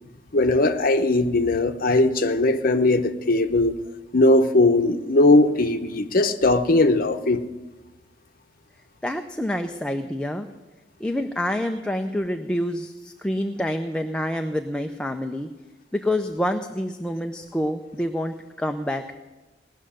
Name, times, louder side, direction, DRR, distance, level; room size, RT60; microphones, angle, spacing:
voice 1, 0.3-3.8 4.1-7.4, left 2 dB, 50° left, 7 dB, 0.8 m, -19 dB
voice 2, 9.0-10.5 11.0-15.5 15.9-19.2, left 1 dB, 5° left, 5 dB, 0.5 m, -27 dB
18.5 x 6.5 x 9.9 m, 1.1 s
head